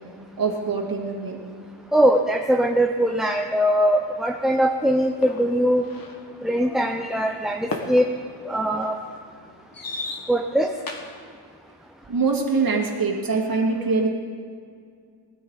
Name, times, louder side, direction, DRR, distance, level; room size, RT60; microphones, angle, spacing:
voice 1, 0.4-1.4 12.1-14.1, right 4 dB, 45° right, 0 dB, 2.3 m, -23 dB
voice 2, 1.9-5.8 6.4-8.1 8.5-9.0 10.3-10.7, equal, ahead, 3 dB, 0.5 m, -21 dB
sound 1, 5.2-11.3, left 3 dB, 45° left, 1.6 m, -37 dB
19.5 x 13.0 x 4.0 m, 2.2 s
wide cardioid pair, 120°, 49 cm